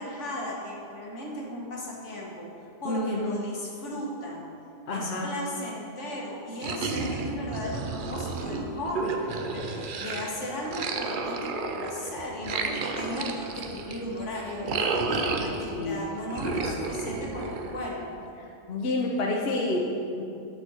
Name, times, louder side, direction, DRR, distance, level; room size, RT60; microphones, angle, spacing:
voice 1, 0.0-2.5 2.8-4.4 4.9-18.1, left 1 dB, 80° left, -3 dB, 1.7 m, -36 dB
voice 2, 2.8-3.4 4.9-5.3 15.7-16.0 16.4-16.8 18.4-20.2, left 2 dB, 60° left, 0 dB, 0.9 m, -29 dB
sound 1, 6.6-10.3 10.7-15.9 16.3-18.0, right 4 dB, 55° right, 0.7 m, -32 dB
8.6 x 4.1 x 6.2 m, 2.7 s
omnidirectional pair, 1.2 m